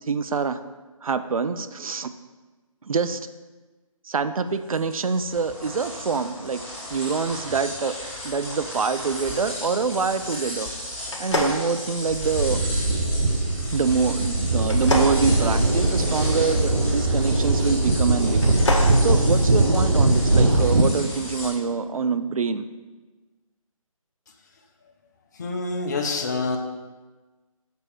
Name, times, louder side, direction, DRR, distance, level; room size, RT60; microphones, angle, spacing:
voice 1, 0.1-0.6 1.0-2.1 2.8-3.2 4.0-6.6 6.9-7.9 8.2-10.7 11.2-12.6 13.7-22.6, right 5 dB, 75° right, 11 dB, 0.5 m, -25 dB
sound 1, 4.5-21.5, left 1 dB, 10° left, 2.3 m, -35 dB
sound 2, 11.1-12.4 14.6-16.2 18.3-18.9, left 2 dB, 55° left, 1.2 m, -27 dB
sound 3, 12.1-20.8, right 2 dB, 55° right, 0.9 m, -21 dB
voice 2, 25.3-26.6, left 3 dB, 30° left, 4 dB, 0.6 m, -27 dB
6.8 x 3.4 x 6.2 m, 1.3 s
figure-of-eight pair, 160°, 18 cm